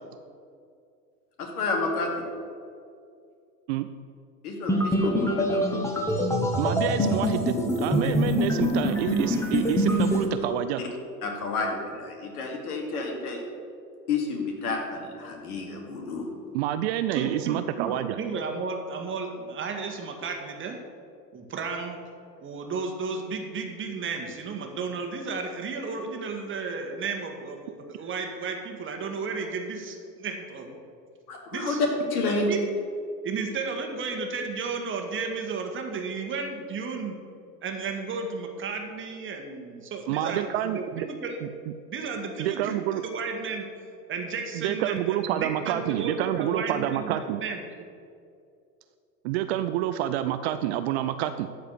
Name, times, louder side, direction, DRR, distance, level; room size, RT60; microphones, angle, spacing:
voice 1, 1.4-2.2 4.4-5.6 11.2-13.4 14.1-16.3 31.3-32.5, left 3 dB, 60° left, 2 dB, 2.6 m, -30 dB
sound 1, 4.7-10.3, left 1 dB, 5° left, 1.4 m, -25 dB
voice 2, 6.6-10.8 16.5-18.2 40.1-41.1 41.4-41.5 42.4-43.0 44.5-47.4 49.2-51.5, right 12 dB, 40° right, 10 dB, 0.5 m, -28 dB
voice 3, 17.1-20.8 21.3-22.0 22.4-30.8 31.5-31.8 32.5-32.6 33.2-37.2 37.6-41.4 41.9-42.7 43.0-43.7 44.1-47.6, right 4 dB, 25° right, 3 dB, 1.6 m, -33 dB
12.5 x 5.0 x 8.1 m, 2.4 s
figure-of-eight pair, 95°, 50 cm